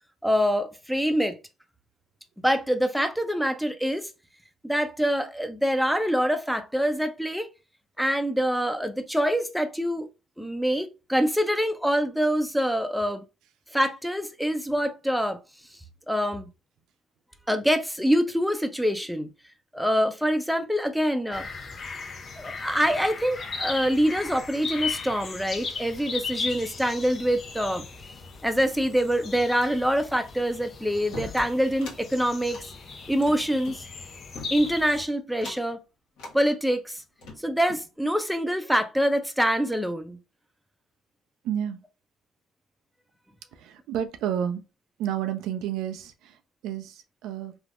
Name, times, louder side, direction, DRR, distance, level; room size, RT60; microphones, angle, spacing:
voice 1, 0.2-1.4 2.4-4.1 4.6-7.5 8.0-10.1 10.4-13.2 13.7-15.4 16.1-16.5 17.5-19.3 19.7-21.4 22.4-27.9 28.4-32.6 33.1-33.8 34.5-35.8 36.3-37.0 37.4-40.2, equal, ahead, 0.5 m, -25 dB
sound 1, 21.3-35.0, left 4 dB, 45° left, 0.6 m, -37 dB
sound 2, 31.1-32.0 32.4-33.8 34.3-34.9 35.3-35.7 36.2-36.4 37.0-37.9, left 3 dB, 80° left, 1.1 m, -42 dB
voice 2, 41.4-41.8 43.5-44.6 45.0-47.6, right 9 dB, 75° right, 0.4 m, -31 dB
3.3 x 2.0 x 2.5 m
supercardioid pair, 70°, 0 cm